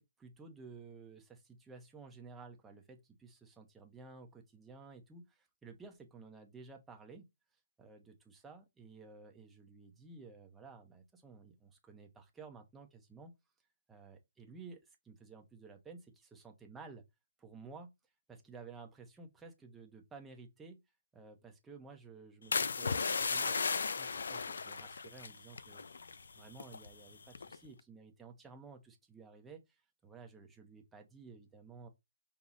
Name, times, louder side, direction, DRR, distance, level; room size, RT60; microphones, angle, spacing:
voice 1, 0.0-7.3 7.8-13.3 13.9-14.8 15.0-17.0 17.4-17.9 18.3-20.8 21.1-25.8 26.4-31.9, right 4 dB, 5° right, 0.6 m, -54 dB
sound 1, 22.5-26.9 27.4-27.7, left 5 dB, 80° left, 0.4 m, -35 dB
5.5 x 2.0 x 3.6 m
hypercardioid pair, 165°, 0 cm